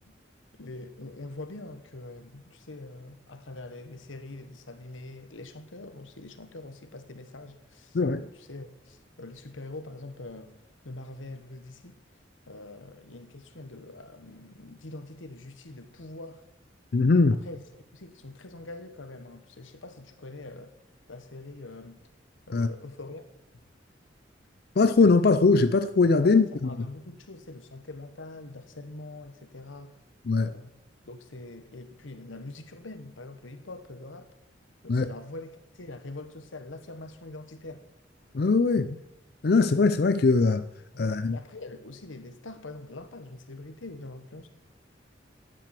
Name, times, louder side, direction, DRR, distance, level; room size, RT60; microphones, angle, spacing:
voice 1, 0.5-10.6 10.8-12.0 12.5-16.4 17.3-17.6 17.9-20.7 21.1-22.0 22.5-23.3 26.2-30.0 30.4-30.7 31.1-34.3 34.8-37.9 40.9-44.5, left 2 dB, 90° left, 1.3 m, -43 dB
voice 2, 16.9-17.4 22.5-22.7 24.8-26.5 30.3-30.5 34.9-35.1 38.3-39.0 39.4-40.6 41.0-41.4, left 3 dB, 55° left, 0.5 m, -21 dB
12.0 x 9.0 x 7.6 m
head